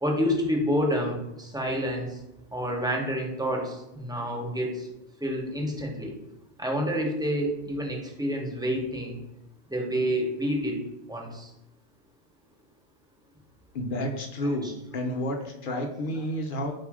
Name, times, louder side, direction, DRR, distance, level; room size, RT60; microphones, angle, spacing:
voice 1, 0.0-2.2 2.5-4.9 5.2-6.1 6.6-9.2 9.7-10.8 11.1-11.5 14.6-14.7 15.7-15.9, equal, 5° right, 0 dB, 0.3 m, -28 dB
voice 2, 13.7-14.7 14.9-16.7, left 1 dB, 60° left, 2 dB, 0.6 m, -30 dB
3.8 x 2.4 x 4.6 m, 0.90 s
omnidirectional pair, 1.2 m